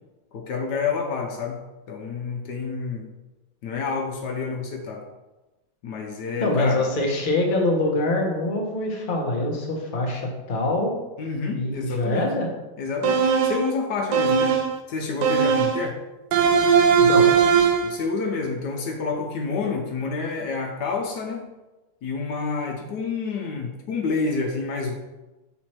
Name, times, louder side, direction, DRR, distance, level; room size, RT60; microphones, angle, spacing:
voice 1, 0.3-1.6 1.9-3.1 3.6-5.0 5.8-6.9 11.2-12.3 12.8-14.5 14.9-16.0 17.8-21.4 22.0-25.0, left 4 dB, 70° left, 2 dB, 1.3 m, -28 dB
voice 2, 6.4-10.2 10.5-11.0 11.5-12.5 17.0-17.3, left 2 dB, 35° left, 0 dB, 1.0 m, -24 dB
sound 1, 13.0-13.7 14.1-14.8 15.2-15.9 16.3-17.9, right 6 dB, 75° right, 1.3 m, -19 dB
6.2 x 4.2 x 4.3 m, 1.1 s
omnidirectional pair, 2.0 m